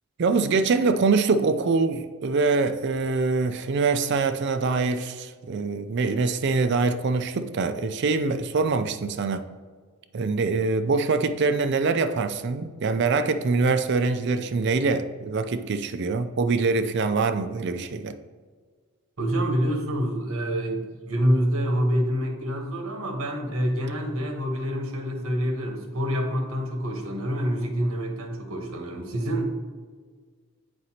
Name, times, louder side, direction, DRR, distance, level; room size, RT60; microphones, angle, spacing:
voice 1, 0.2-9.5 10.1-18.1, right 4 dB, 55° right, 10 dB, 0.4 m, -24 dB
voice 2, 19.2-29.5, equal, 75° right, 3 dB, 1.1 m, -27 dB
7.9 x 5.0 x 2.8 m, 1.6 s
head